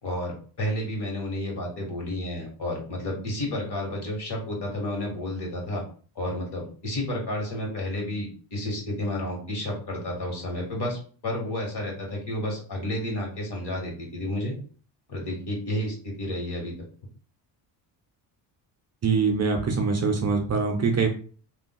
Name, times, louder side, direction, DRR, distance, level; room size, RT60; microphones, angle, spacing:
voice 1, 0.0-5.8 6.1-14.6 15.1-16.7, left 1 dB, 55° left, 0 dB, 1.5 m, -31 dB
voice 2, 19.0-21.1, right 5 dB, 35° right, 2 dB, 0.6 m, -23 dB
3.5 x 2.2 x 2.2 m, 0.42 s
cardioid pair, 75°, 48 cm